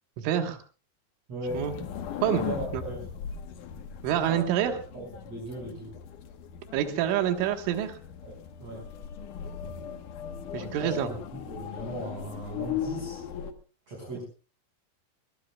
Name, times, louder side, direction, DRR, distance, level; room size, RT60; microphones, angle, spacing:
voice 1, 0.2-0.6 1.5-1.8 2.2-2.5 2.7-2.8 4.0-4.7 6.7-8.0 10.5-11.1, right 10 dB, 80° right, 6 dB, 3.9 m, -27 dB
voice 2, 1.3-1.7 2.4-3.1 4.3-6.0 8.3-8.9 10.8-10.9 11.5-13.2 13.9-14.2, right 2 dB, 30° right, -4 dB, 6.5 m, -38 dB
sound 1, 1.5-13.5, left 8 dB, 80° left, 1.8 m, -38 dB
22.0 x 21.0 x 2.3 m, 0.35 s
omnidirectional pair, 5.6 m